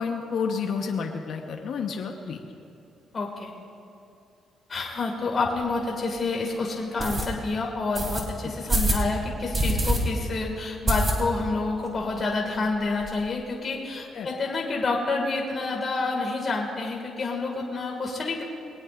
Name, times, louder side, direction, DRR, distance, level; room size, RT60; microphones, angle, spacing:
voice 1, 0.0-2.4 14.1-14.3, left 5 dB, 65° left, 2 dB, 1.1 m, -30 dB
voice 2, 3.1-3.5 4.7-18.4, left 3 dB, 40° left, -1 dB, 2.2 m, -28 dB
sound 1, 5.6-5.7 6.2-6.3 7.0-7.3 7.9-8.2 8.7-9.0 9.5-10.0 10.3-10.4 10.9-11.5 11.9-12.0 12.2-12.3 12.6-13.2, right 1 dB, 30° right, 3.1 m, -25 dB
22.0 x 18.5 x 2.6 m, 2.8 s
cardioid pair, 90°, 0 cm